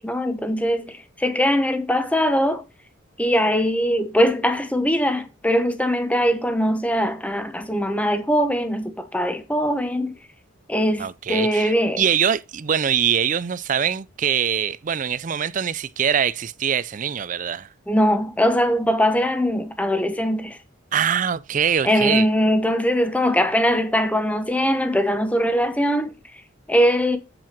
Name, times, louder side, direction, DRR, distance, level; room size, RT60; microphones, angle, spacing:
voice 1, 0.0-2.6 3.2-10.2 10.7-12.0 17.9-20.6 21.8-26.1 26.7-27.2, equal, 5° left, 0.9 m, -21 dB
voice 2, 11.0-17.7 20.9-22.3, right 8 dB, 40° right, 0.4 m, -23 dB
7.6 x 7.5 x 4.4 m
head